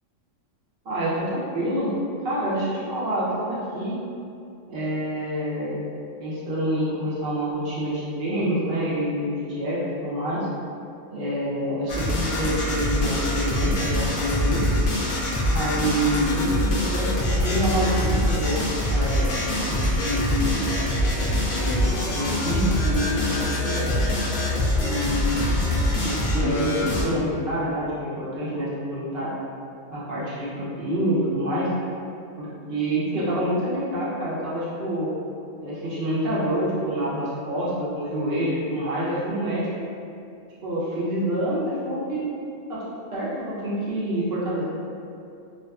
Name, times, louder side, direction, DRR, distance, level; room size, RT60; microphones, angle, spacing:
voice 1, 0.8-1.9 2.2-4.0 4.7-5.8 6.2-10.5 11.1-14.7 15.5-18.6 18.9-20.7 21.5-24.2 24.8-25.7 26.0-29.3 29.9-31.7 32.4-35.1 35.6-39.7 40.6-42.2 42.7-42.8 43.1-44.6, equal, 60° right, -8 dB, 0.7 m, -27 dB
sound 1, 11.9-27.0, left 1 dB, 65° left, 0.4 m, -24 dB
2.5 x 2.3 x 2.2 m, 2.5 s
omnidirectional pair, 1.3 m